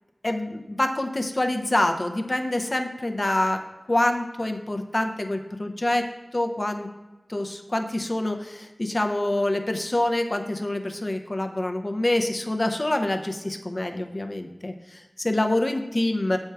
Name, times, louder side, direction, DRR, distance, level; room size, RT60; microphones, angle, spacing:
voice 1, 0.2-3.6 3.9-6.9 7.3-16.4, left 1 dB, 40° left, 5 dB, 0.6 m, -26 dB
6.9 x 4.5 x 4.6 m, 1.1 s
wide cardioid pair, 50°, 0 cm